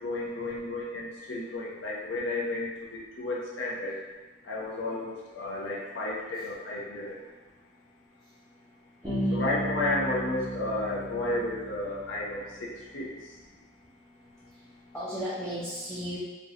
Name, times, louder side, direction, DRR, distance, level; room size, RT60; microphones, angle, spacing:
voice 1, 0.0-4.0 4.5-7.2 9.4-12.4 12.9-13.1, left 2 dB, 85° left, -5 dB, 0.6 m, -32 dB
voice 2, 9.0-9.5 14.9-16.2, equal, 5° left, -10 dB, 0.5 m, -34 dB
Bass guitar, 9.0-12.8, right 1 dB, 25° right, 0.8 m, -36 dB
2.7 x 2.2 x 3.8 m, 1.2 s
head